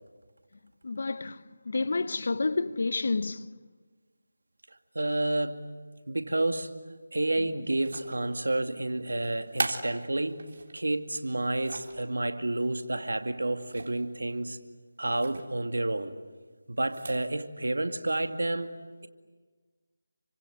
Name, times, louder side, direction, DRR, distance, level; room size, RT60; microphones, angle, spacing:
voice 1, 0.8-3.5, left 3 dB, 55° left, 1.0 m, -30 dB
voice 2, 4.9-5.6 6.1-6.8 7.1-14.6 15.0-16.2 16.7-19.1, right 2 dB, 85° right, 2.3 m, -30 dB
sound 1, 7.7-8.4 9.2-10.8 11.3-12.0 13.6-14.1 14.4-14.5 15.1-15.5 16.8-17.3, right 3 dB, 55° right, 3.5 m, -38 dB
30.0 x 25.0 x 8.0 m
figure-of-eight pair, 165°, 0 cm